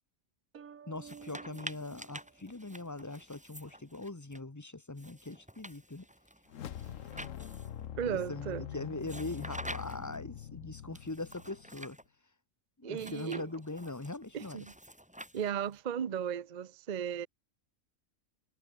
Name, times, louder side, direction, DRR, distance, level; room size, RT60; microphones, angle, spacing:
sound 1, 0.5-3.2, right 7 dB, 70° right, 1.8 m, -53 dB
voice 1, 0.9-6.1 8.0-12.0 12.8-14.7, left 2 dB, 15° left, 1.1 m, -41 dB
sound 2, 1.0-4.4 5.0-7.9 9.0-10.2 11.0-12.0 12.9-15.8, equal, 5° right, 2.8 m, -48 dB
sound 3, 6.5-11.9, left 10 dB, 65° left, 1.2 m, -44 dB
voice 2, 8.0-8.6 12.8-13.4 14.3-14.7 15.3-17.3, right 8 dB, 40° right, 0.7 m, -35 dB
omnidirectional pair, 1.5 m